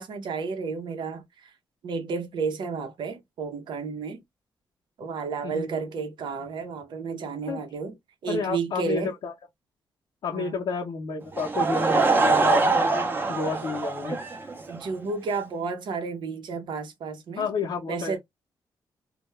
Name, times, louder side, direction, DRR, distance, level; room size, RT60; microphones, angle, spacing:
voice 1, 0.0-1.5 1.8-4.2 5.0-8.0 8.2-9.1 10.3-10.6 14.7-17.5 17.9-18.2, right 5 dB, 70° right, 0.6 m, -32 dB
voice 2, 8.3-9.3 10.2-13.0 13.3-14.2 17.4-18.2, left 5 dB, 70° left, 0.6 m, -30 dB
Laughter / Crowd, 11.3-14.9, right 3 dB, 25° right, 0.5 m, -23 dB
2.2 x 2.1 x 3.0 m
cardioid pair, 125°, 8 cm